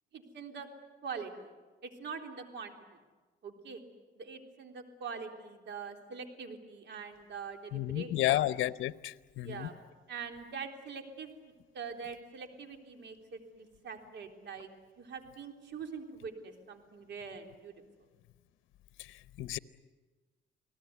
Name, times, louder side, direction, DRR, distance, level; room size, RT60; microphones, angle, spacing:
voice 1, 0.1-0.7 1.0-1.5 1.8-2.7 3.4-3.8 4.2-8.4 9.4-9.8 10.1-11.3 11.7-14.7 15.0-17.7, right 5 dB, 65° right, 4 dB, 3.7 m, -43 dB
voice 2, 7.7-9.7 19.0-19.6, left 14 dB, 85° left, 14 dB, 0.8 m, -32 dB
29.0 x 19.0 x 9.5 m, 1.3 s
cardioid pair, 90°, 20 cm